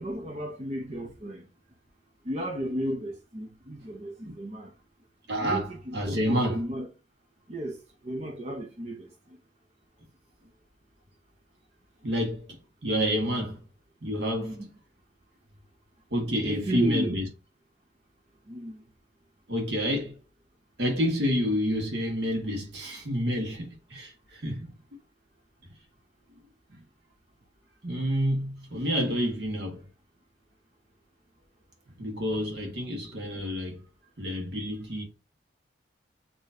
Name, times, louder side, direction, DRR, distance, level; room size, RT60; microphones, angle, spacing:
voice 1, 0.0-1.5 2.2-4.7 5.4-6.9 7.5-7.8 8.0-9.1 14.4-14.6 16.4-17.2 18.5-18.8, right 1 dB, 35° right, 0.7 m, -34 dB
voice 2, 5.3-6.6 12.0-13.6 14.0-14.6 16.1-17.2 19.5-20.2 20.8-24.7 26.7-26.8 27.8-29.8 32.0-33.8 34.2-35.0, equal, 70° right, 1.6 m, -29 dB
6.5 x 3.0 x 2.7 m
head